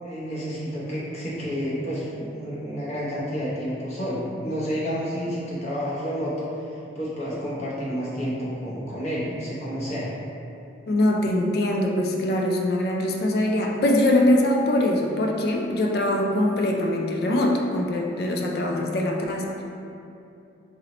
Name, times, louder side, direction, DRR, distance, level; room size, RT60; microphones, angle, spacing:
voice 1, 0.0-10.1, equal, 35° left, -8 dB, 0.7 m, -30 dB
voice 2, 10.9-19.6, left 1 dB, 55° left, 1 dB, 0.3 m, -23 dB
2.9 x 2.7 x 4.2 m, 2.7 s
head